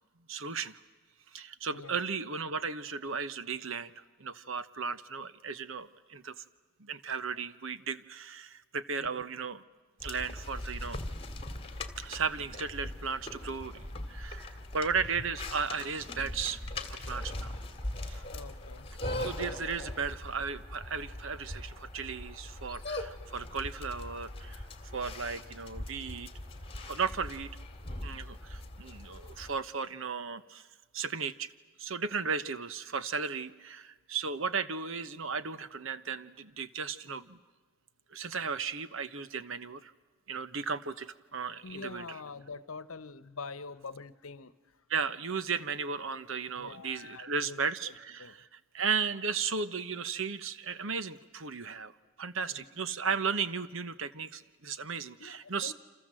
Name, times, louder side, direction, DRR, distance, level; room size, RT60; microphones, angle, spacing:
voice 1, 0.3-0.8 1.3-6.4 6.8-9.6 10.0-11.0 12.0-16.6 16.9-17.6 18.0-18.2 19.2-24.7 24.9-26.3 26.9-27.5 28.0-30.7 30.9-31.5 31.8-37.4 38.1-39.9 40.3-42.2 44.9-51.9 52.2-55.7, right 5 dB, 65° right, 13 dB, 1.1 m, -35 dB
sound 1, 10.0-29.6, left 1 dB, 25° left, 2.2 m, -41 dB
voice 2, 18.3-18.9 41.6-44.6 46.5-47.6 47.9-48.3 52.5-52.7 53.0-53.1 55.2-55.7, left 4 dB, 75° left, 16 dB, 1.0 m, -45 dB
29.0 x 27.0 x 7.7 m, 1.3 s
head